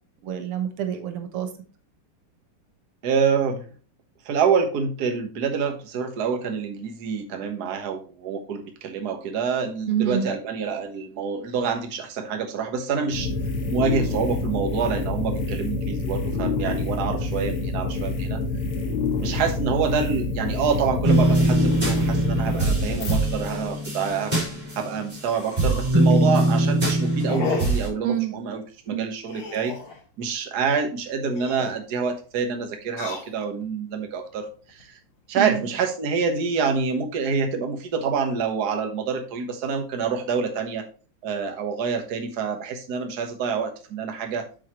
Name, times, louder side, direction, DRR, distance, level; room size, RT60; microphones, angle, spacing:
voice 1, 0.2-1.5 9.9-10.3 28.0-28.4 28.9-29.1 35.4-35.7, right 9 dB, 90° right, 7 dB, 2.1 m, -27 dB
voice 2, 3.0-3.7 4.2-13.3 13.7-18.4 19.2-24.3 24.8-29.8 30.2-35.0 35.3-40.8 41.2-44.5, right 5 dB, 50° right, 5 dB, 1.7 m, -27 dB
sound 1, 13.1-23.2, left 3 dB, 90° left, 2.4 m, -27 dB
sound 2, 21.0-25.2 25.6-27.9, right 1 dB, 20° right, 4.4 m, -22 dB
sound 3, 23.6-23.7 24.2-24.3 24.5-24.6 25.2-25.9 26.4-26.7 27.3-27.9 29.3-30.0 31.2-31.8 32.8-33.7 34.3-34.8, left 4 dB, 70° left, 2.7 m, -33 dB
8.6 x 6.5 x 3.0 m, 0.36 s
omnidirectional pair, 2.4 m